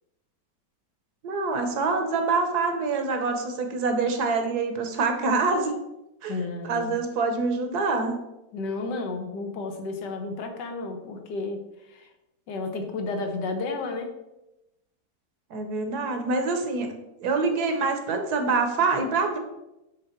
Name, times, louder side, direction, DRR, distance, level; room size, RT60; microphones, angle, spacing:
voice 1, 1.2-5.7 6.2-8.1 15.5-16.9 17.2-19.4, right 4 dB, 65° right, 5 dB, 1.3 m, -25 dB
voice 2, 6.3-7.0 8.5-12.1 12.5-14.1, left 3 dB, 80° left, 5 dB, 1.5 m, -32 dB
7.6 x 3.4 x 4.3 m, 0.93 s
omnidirectional pair, 1.9 m